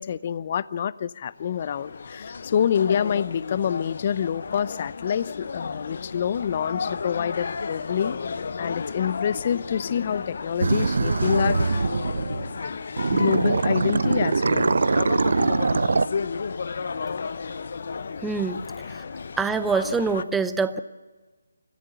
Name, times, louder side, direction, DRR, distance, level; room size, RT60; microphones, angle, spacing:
voice 1, 0.0-8.2 8.6-11.8 13.1-14.8, left 8 dB, 35° left, 19 dB, 0.6 m, -27 dB
sound 1, 1.4-20.2, left 5 dB, 50° left, 0.9 m, -33 dB
sound 2, 10.6-12.6 13.0-16.1, right 4 dB, 65° right, 0.6 m, -23 dB
voice 2, 18.2-18.6 19.0-19.1 19.4-20.8, right 4 dB, 5° right, 11 dB, 0.7 m, -25 dB
27.0 x 14.5 x 6.8 m, 1.3 s
figure-of-eight pair, 160°, 0 cm